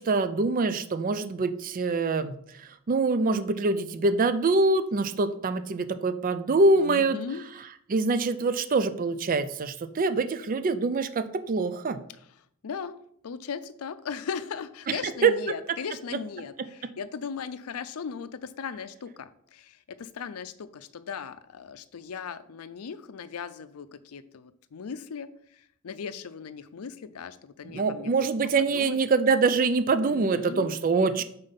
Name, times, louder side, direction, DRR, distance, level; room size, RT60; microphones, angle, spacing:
voice 1, 0.0-7.2 7.9-12.0 14.9-15.3 27.6-31.2, right 3 dB, 40° right, 12 dB, 0.4 m, -25 dB
voice 2, 6.8-7.4 12.6-13.0 13.2-29.0 30.0-31.2, left 6 dB, 85° left, 13 dB, 0.5 m, -38 dB
5.2 x 4.0 x 5.6 m, 0.68 s
head